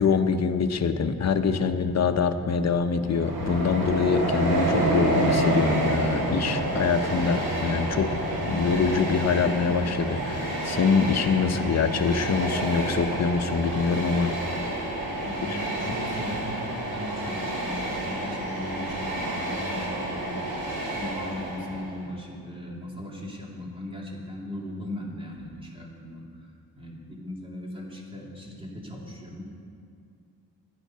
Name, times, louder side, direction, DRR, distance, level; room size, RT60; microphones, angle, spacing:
voice 1, 0.0-14.3 15.4-16.0, left 5 dB, 45° left, 7 dB, 0.9 m, -25 dB
Train, 3.1-22.0, right 1 dB, 85° right, 3.4 m, -29 dB
voice 2, 15.2-16.6 16.9-20.5 20.9-26.2 26.8-29.4, left 1 dB, 15° right, -2 dB, 2.7 m, -38 dB
14.0 x 10.5 x 5.6 m, 2.4 s
cardioid pair, 110°, 36 cm